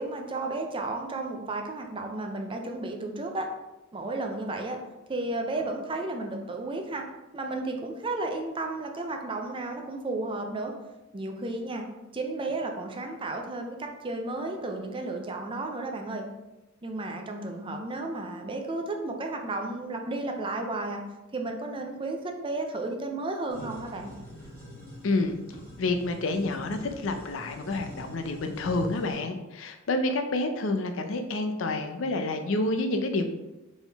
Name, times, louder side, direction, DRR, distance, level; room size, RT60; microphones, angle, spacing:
voice 1, 0.0-3.5 3.9-4.8 5.1-7.1 7.3-10.7 11.1-11.9 12.1-16.3 16.8-21.0 21.3-24.1, right 2 dB, 25° right, 3 dB, 0.5 m, -33 dB
sound 1, 23.5-29.2, equal, 10° left, 1.3 m, -43 dB
voice 2, 25.0-25.4 25.8-33.2, left 2 dB, 70° left, 7 dB, 0.5 m, -28 dB
4.1 x 3.7 x 3.5 m, 1.0 s
head